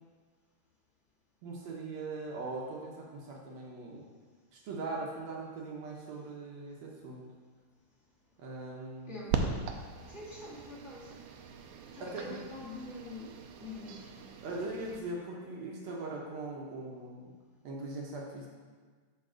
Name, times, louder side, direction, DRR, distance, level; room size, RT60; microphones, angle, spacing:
voice 1, 1.4-4.0 4.5-7.2 8.4-9.2 12.0-12.4 14.4-17.3 17.6-18.5, right 2 dB, 65° right, -2 dB, 2.0 m, -40 dB
voice 2, 9.1-11.1 11.4-11.5 11.9-14.1, left 2 dB, 30° left, -7 dB, 1.5 m, -46 dB
sound 1, 9.3-15.0, right 5 dB, 90° right, 2.1 m, -39 dB
8.1 x 4.7 x 6.1 m, 1.5 s
omnidirectional pair, 3.5 m